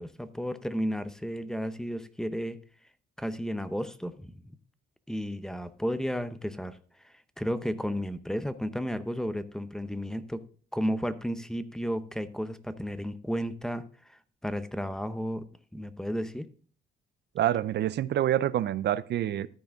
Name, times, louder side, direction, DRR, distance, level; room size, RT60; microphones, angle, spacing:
voice 1, 0.0-2.6 3.2-4.4 5.1-6.8 7.0-10.4 10.7-13.8 14.1-15.5 15.7-16.5, equal, 5° left, 12 dB, 0.7 m, -33 dB
voice 2, 17.4-19.5, right 12 dB, 60° right, 18 dB, 0.5 m, -27 dB
13.5 x 4.8 x 3.7 m, 0.42 s
cardioid pair, 90°, 20 cm